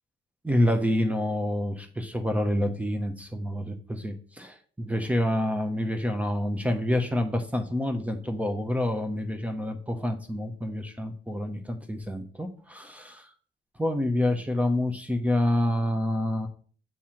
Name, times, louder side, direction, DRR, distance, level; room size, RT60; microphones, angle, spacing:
voice 1, 0.4-13.3 13.8-16.5, left 1 dB, 5° right, 6 dB, 1.1 m, -27 dB
7.6 x 3.4 x 4.5 m, 0.42 s
cardioid pair, 90°, 20 cm